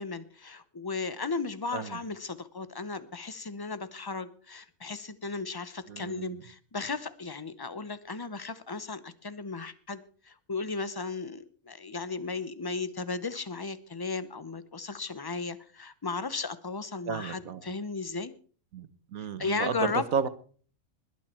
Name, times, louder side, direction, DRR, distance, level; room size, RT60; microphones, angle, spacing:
voice 1, 0.0-18.3 19.4-20.0, left 4 dB, 20° left, 14 dB, 0.7 m, -35 dB
voice 2, 5.9-6.4 17.1-17.6 18.7-19.7 20.1-20.3, right 6 dB, 90° right, 13 dB, 1.6 m, -33 dB
20.5 x 9.5 x 4.4 m, 0.42 s
omnidirectional pair, 1.4 m